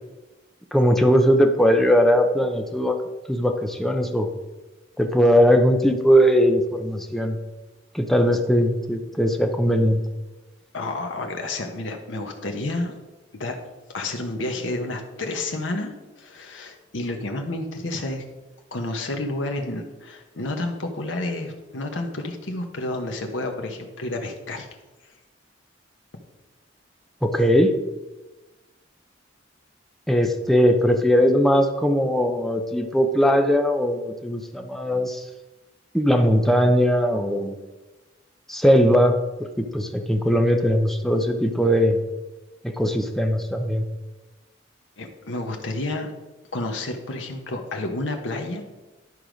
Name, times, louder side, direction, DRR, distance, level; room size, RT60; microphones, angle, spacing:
voice 1, 0.7-2.9 3.3-4.3 5.0-7.4 7.9-10.0 27.2-27.7 30.1-35.2 35.9-37.6 38.5-39.2 39.6-42.0 42.6-43.8, equal, ahead, 4 dB, 0.7 m, -19 dB
voice 2, 10.7-12.9 13.4-13.6 13.9-18.2 18.7-24.7 25.0-25.1 45.0-46.1 46.5-48.7, left 2 dB, 80° left, 3 dB, 1.0 m, -30 dB
11.0 x 4.8 x 5.1 m, 1.1 s
head